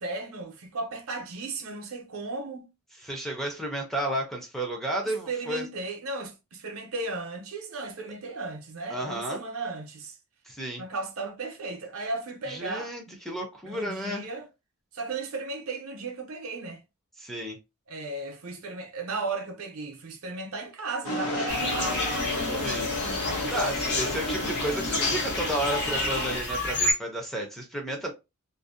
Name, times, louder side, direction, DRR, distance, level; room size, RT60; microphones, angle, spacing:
voice 1, 0.0-2.7 5.0-10.1 10.8-13.2 13.7-14.5 14.9-16.8 17.9-22.0 22.3-24.1, right 3 dB, 70° right, 0.6 m, -35 dB
voice 2, 3.0-5.7 8.9-9.4 10.5-10.8 12.5-14.2 17.2-17.6 22.6-22.9 23.5-28.1, right 1 dB, ahead, 0.4 m, -32 dB
sound 1, 21.0-26.4, left 2 dB, 85° left, 0.8 m, -31 dB
sound 2, 21.5-26.9, left 1 dB, 50° left, 0.8 m, -31 dB
2.5 x 2.0 x 2.4 m
head